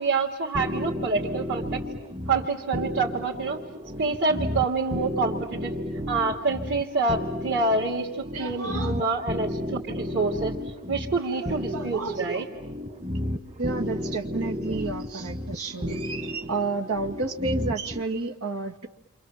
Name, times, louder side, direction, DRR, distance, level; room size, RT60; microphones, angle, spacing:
voice 1, 0.0-1.8 2.3-3.6 4.0-5.7 6.1-10.6 10.9-12.5, right 3 dB, 55° right, -5 dB, 3.1 m, -27 dB
sound 1, 0.5-18.0, left 1 dB, 35° right, 2.2 m, -33 dB
voice 2, 8.3-8.9 11.3-12.5 13.6-18.9, right 3 dB, 90° right, 2 dB, 2.2 m, -31 dB
29.0 x 26.5 x 7.5 m, 0.84 s
head